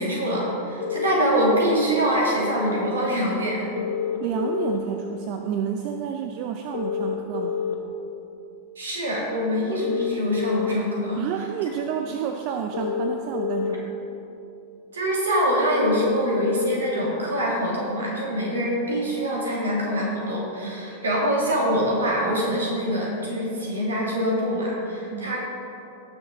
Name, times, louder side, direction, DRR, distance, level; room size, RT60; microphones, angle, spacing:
voice 1, 0.0-3.7 8.8-11.2 14.9-25.4, equal, 70° right, -3 dB, 2.6 m, -24 dB
sound 1, 0.8-1.8 3.8-4.8 6.7-7.8 9.7-10.8 12.7-13.8 15.7-16.8, left 7 dB, 60° left, 1.1 m, -27 dB
voice 2, 4.2-7.7 11.1-13.9 25.1-25.4, right 8 dB, 45° right, 5 dB, 0.6 m, -30 dB
18.0 x 6.4 x 3.9 m, 2.8 s
figure-of-eight pair, 90°, 0 cm